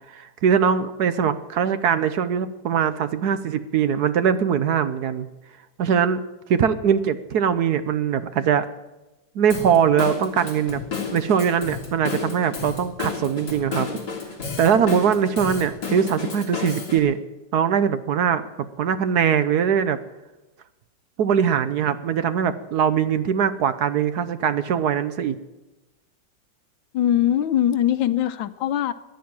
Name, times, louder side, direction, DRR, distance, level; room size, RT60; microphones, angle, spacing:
voice 1, 0.1-5.3 5.8-6.2 6.5-8.7 9.3-10.8 11.1-14.0 14.6-17.2 17.5-18.5 18.8-20.0 21.2-25.4, right 7 dB, 65° right, 12 dB, 1.2 m, -21 dB
Drum kit / Drum, 9.5-17.0, left 5 dB, 55° left, 3.6 m, -32 dB
voice 2, 26.9-28.9, left 11 dB, 90° left, 13 dB, 1.5 m, -21 dB
15.0 x 10.5 x 8.8 m, 1.0 s
omnidirectional pair, 2.1 m